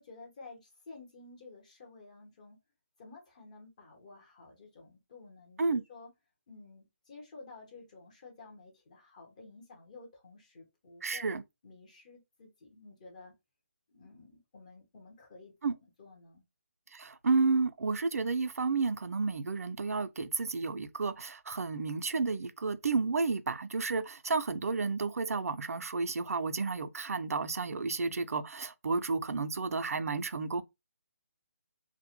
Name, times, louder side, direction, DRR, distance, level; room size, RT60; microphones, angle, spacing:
voice 1, 0.0-2.6 3.0-6.1 6.5-11.4 11.6-13.4 13.9-15.5 16.0-16.4, left 3 dB, 30° left, 0.9 m, -52 dB
voice 2, 11.0-11.4 15.6-15.7 16.9-30.6, right 4 dB, 85° right, 0.4 m, -31 dB
2.1 x 2.1 x 2.9 m
hypercardioid pair, 170°, 8 cm